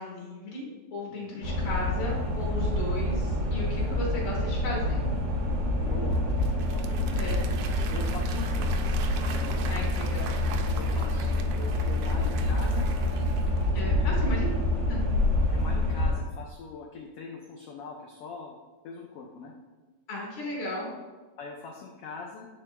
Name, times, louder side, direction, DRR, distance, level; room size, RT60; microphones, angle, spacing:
voice 1, 0.0-5.0 7.2-7.5 9.7-10.4 13.7-14.5 14.9-15.0 20.1-20.9, left 1 dB, 60° left, -4 dB, 2.7 m, -35 dB
voice 2, 1.1-1.5 3.9-4.0 5.8-6.2 6.6-7.2 7.9-9.7 10.7-12.9 13.9-14.6 15.5-18.5 18.8-19.5 21.4-22.5, left 4 dB, 85° left, 0 dB, 1.3 m, -42 dB
sound 1, 1.4-16.1, left 1 dB, 50° right, 1.6 m, -27 dB
Applause / Crowd, 6.1-13.9, right 6 dB, 80° right, 1.9 m, -42 dB
9.7 x 4.8 x 2.2 m, 1.3 s
omnidirectional pair, 3.4 m